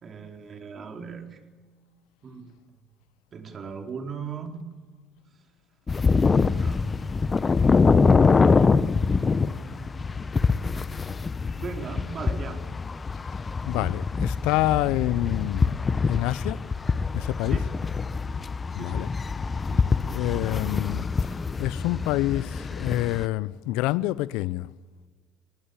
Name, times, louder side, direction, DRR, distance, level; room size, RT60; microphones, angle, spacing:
voice 1, 0.0-1.4 2.2-2.6 3.3-4.7 5.3-5.4 6.6-8.5 9.3-10.2 11.6-12.6 17.4-17.7 18.7-19.1 19.6-20.0, right 5 dB, 40° right, 4.2 m, -39 dB
sound 1, 5.9-23.3, left 4 dB, 30° left, 1.1 m, -24 dB
voice 2, 13.6-15.7 16.1-16.6 17.1-17.7 18.7-19.1 20.1-21.1 21.6-24.7, left 17 dB, 70° left, 0.7 m, -27 dB
29.5 x 21.0 x 7.1 m
hypercardioid pair, 65°, 0 cm